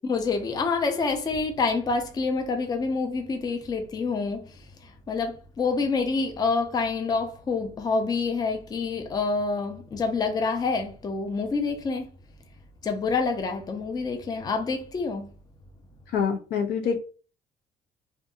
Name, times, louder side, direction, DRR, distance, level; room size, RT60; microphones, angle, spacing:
voice 1, 0.0-4.5 4.8-12.1 12.8-15.3, left 4 dB, 25° left, 0.4 m, -27 dB
voice 2, 16.1-17.0, left 6 dB, 75° left, 0.6 m, -25 dB
2.6 x 2.5 x 2.4 m
cardioid pair, 110°, 17 cm